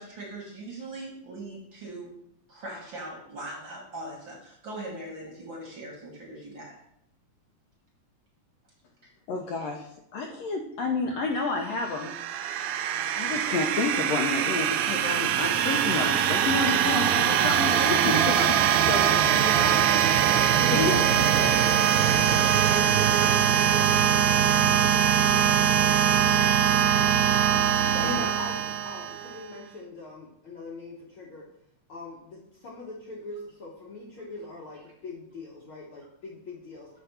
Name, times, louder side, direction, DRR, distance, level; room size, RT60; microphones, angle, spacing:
voice 1, 0.0-2.1 2.5-6.7 9.6-9.7 16.5-16.9 17.8-18.0 18.3-18.5 18.9-21.5 24.8-26.1 26.6-26.7 27.9-28.3, right 2 dB, 50° right, -3 dB, 1.8 m, -39 dB
voice 2, 9.3-12.1 13.1-18.4 18.9-19.0 20.7-21.0, left 3 dB, 80° left, 2 dB, 1.5 m, -29 dB
sound 1, 11.8-29.4, right 9 dB, 80° right, 1.6 m, -22 dB
voice 3, 28.0-31.4 31.9-36.9, left 3 dB, 65° left, -4 dB, 1.4 m, -41 dB
7.2 x 3.5 x 5.6 m, 0.75 s
omnidirectional pair, 3.5 m